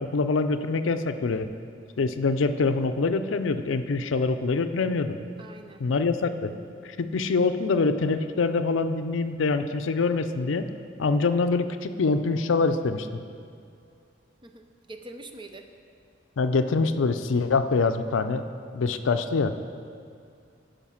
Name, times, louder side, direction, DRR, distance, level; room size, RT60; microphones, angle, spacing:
voice 1, 0.0-1.5 2.0-5.2 5.8-6.5 7.0-10.7 11.0-13.1 16.4-18.4 18.7-19.5, left 4 dB, 90° left, 10 dB, 0.5 m, -25 dB
voice 2, 5.4-5.9 14.4-15.7, right 2 dB, 25° right, 6 dB, 0.6 m, -44 dB
12.0 x 5.1 x 5.7 m, 2.3 s
head